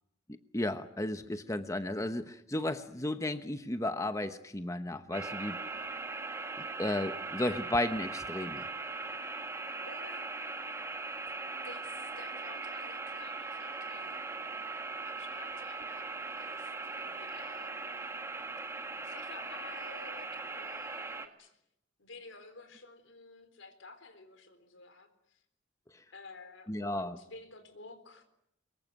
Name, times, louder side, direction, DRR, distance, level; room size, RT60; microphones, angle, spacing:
voice 1, 0.5-5.6 6.6-8.7 26.7-27.1, left 1 dB, 15° left, 9 dB, 0.9 m, -34 dB
sound 1, 5.1-21.3, right 3 dB, 15° right, 1.8 m, -40 dB
voice 2, 9.6-10.3 11.6-14.2 15.0-18.2 19.0-21.5 22.0-25.4 26.1-28.2, left 3 dB, 80° left, 10 dB, 4.1 m, -52 dB
24.5 x 22.5 x 9.4 m, 0.79 s
head